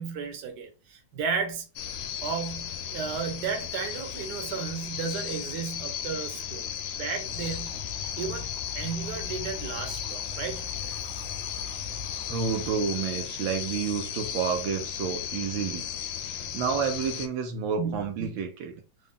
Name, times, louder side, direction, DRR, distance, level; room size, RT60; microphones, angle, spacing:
voice 1, 0.0-1.7 2.2-7.7 8.2-11.4 17.8-18.4, right 6 dB, 65° right, 1.4 m, -34 dB
sound 1, 1.8-17.3, left 9 dB, 80° left, 1.3 m, -35 dB
sound 2, 7.3-12.7, left 5 dB, 45° left, 1.0 m, -42 dB
voice 2, 12.3-15.9 16.2-18.7, right 6 dB, 80° right, 1.4 m, -30 dB
3.9 x 2.3 x 3.6 m
omnidirectional pair, 2.1 m